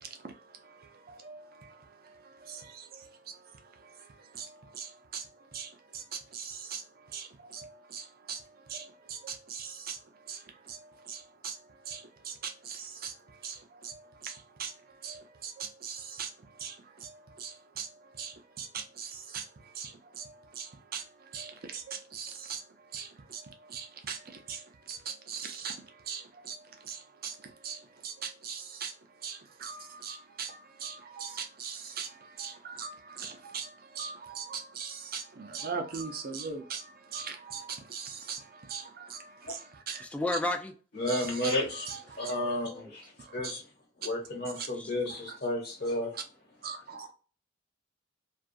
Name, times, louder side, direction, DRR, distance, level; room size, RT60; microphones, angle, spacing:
voice 1, 0.0-40.1 41.1-42.3 43.2-43.5 44.6-44.7 45.3-45.4 46.1-46.2 46.6-47.1, right 6 dB, 50° right, 0.6 m, -42 dB
voice 2, 40.0-40.7 42.4-42.9 44.7-44.9 46.7-46.8, left 2 dB, 5° left, 0.3 m, -33 dB
voice 3, 40.9-41.9 42.2-43.7 44.0-46.1, left 1 dB, 55° left, 1.1 m, -32 dB
2.4 x 2.3 x 2.5 m
head